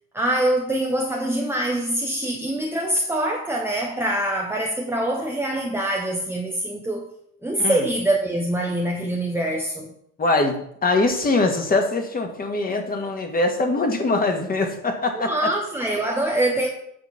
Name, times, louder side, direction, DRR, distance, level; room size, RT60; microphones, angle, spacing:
voice 1, 0.1-7.1 7.4-9.9 15.1-16.7, right 1 dB, 5° right, 1.1 m, -24 dB
voice 2, 10.2-15.3, left 2 dB, 20° left, 2.0 m, -22 dB
8.7 x 5.9 x 5.9 m
figure-of-eight pair, 75°, 46 cm